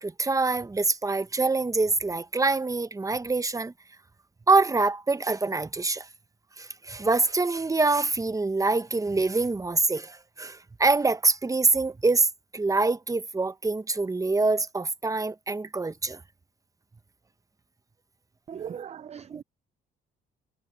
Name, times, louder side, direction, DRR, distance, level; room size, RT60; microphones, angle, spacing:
voice 1, 0.0-3.7 4.5-6.1 6.6-12.3 12.5-16.2, right 3 dB, 15° right, 0.8 m, -25 dB
voice 2, 18.5-19.4, right 8 dB, 35° right, 0.4 m, -38 dB
cardioid pair, 90°, 20 cm